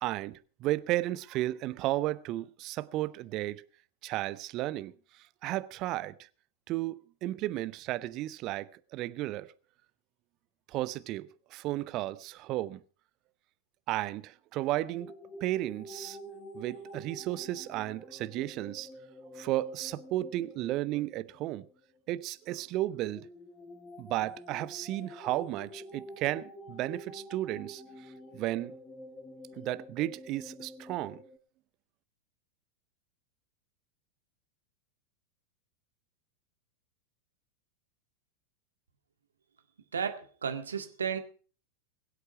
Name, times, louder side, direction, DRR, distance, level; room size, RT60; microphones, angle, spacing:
voice 1, 0.0-3.6 4.0-4.9 5.4-6.1 6.7-9.5 10.7-12.8 13.9-15.1 15.4-16.2 16.5-18.9 19.4-21.6 22.1-23.3 24.0-27.8 28.3-28.7 29.6-31.2, right 16 dB, 40° right, 0.8 m, -33 dB
sound 1, 14.9-22.0 22.9-31.4, equal, 15° left, 2.1 m, -48 dB
voice 2, 39.9-41.2, right 7 dB, 70° right, 2.0 m, -33 dB
22.0 x 8.2 x 5.7 m
figure-of-eight pair, 90°, 0 cm